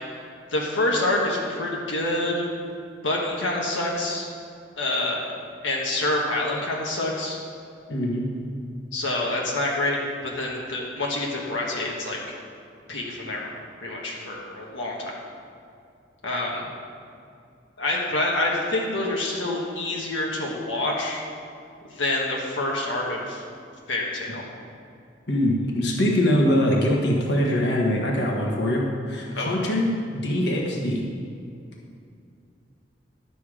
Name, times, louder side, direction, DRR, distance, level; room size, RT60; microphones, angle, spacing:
voice 1, 0.5-2.5 3.0-4.3 4.8-5.3 5.6-7.4 8.9-10.0 10.2-12.2 12.9-13.5 13.8-15.2 16.2-16.7 17.8-21.2 22.0-23.4 23.9-24.5 29.4-29.5, left 2 dB, 80° left, -3 dB, 1.4 m, -27 dB
voice 2, 7.9-8.3 25.3-31.0, left 1 dB, 65° left, -2 dB, 1.4 m, -23 dB
11.5 x 7.0 x 4.9 m, 2.4 s
head